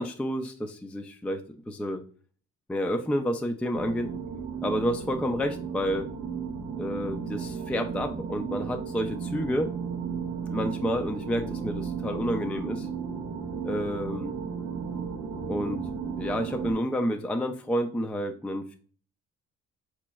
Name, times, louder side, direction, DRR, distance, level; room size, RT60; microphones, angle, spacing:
voice 1, 0.0-2.0 2.7-4.1 4.6-6.1 6.8-9.7 10.5-12.9 13.6-14.4 15.5-15.8 16.2-18.7, equal, 5° left, 5 dB, 0.3 m, -29 dB
sound 1, 3.7-16.7, right 6 dB, 75° right, 0.7 m, -34 dB
4.1 x 3.0 x 2.2 m, 0.43 s
cardioid pair, 90°, 30 cm